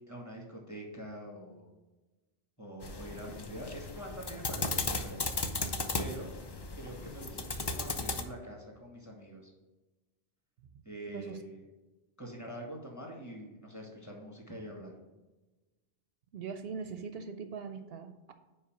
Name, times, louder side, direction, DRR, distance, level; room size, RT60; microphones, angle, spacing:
voice 1, 0.1-1.7 2.6-5.2 6.0-6.4 6.8-9.5 10.8-11.6 12.2-14.9, equal, 15° left, 0 dB, 1.7 m, -45 dB
sound 1, 2.8-8.2, left 3 dB, 35° left, 0.4 m, -36 dB
voice 2, 11.1-11.4 16.3-18.3, right 5 dB, 75° right, 9 dB, 0.8 m, -41 dB
5.6 x 4.8 x 5.9 m, 1.1 s
omnidirectional pair, 1.1 m